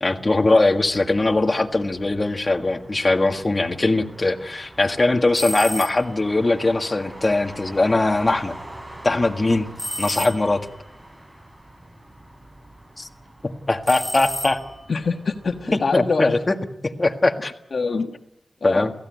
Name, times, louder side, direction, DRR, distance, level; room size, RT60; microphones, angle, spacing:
voice 1, 0.0-8.6 9.0-9.7 10.0-10.7 13.0-13.1 13.4-14.6 15.7-16.6 16.8-17.5 18.6-18.9, left 2 dB, 30° left, 5 dB, 1.8 m, -21 dB
Motor vehicle (road), 0.7-15.6, right 1 dB, 15° right, 7.2 m, -43 dB
sound 1, 5.3-6.3 9.8-10.8 13.8-15.0, equal, 5° left, 3.0 m, -31 dB
voice 2, 14.9-16.3 17.7-18.1 18.6-18.9, left 4 dB, 60° left, 6 dB, 1.4 m, -24 dB
29.5 x 16.5 x 9.3 m, 0.85 s
wide cardioid pair, 120°, 0 cm